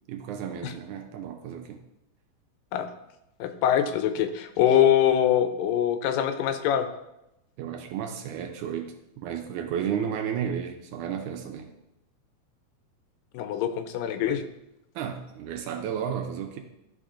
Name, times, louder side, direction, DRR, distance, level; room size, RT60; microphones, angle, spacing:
voice 1, 0.1-1.8 7.6-11.7 15.0-16.6, right 8 dB, 80° right, 4 dB, 1.9 m, -33 dB
voice 2, 3.4-6.9 13.3-14.4, left 10 dB, 90° left, 9 dB, 2.3 m, -23 dB
12.5 x 4.2 x 2.5 m, 0.88 s
omnidirectional pair, 3.8 m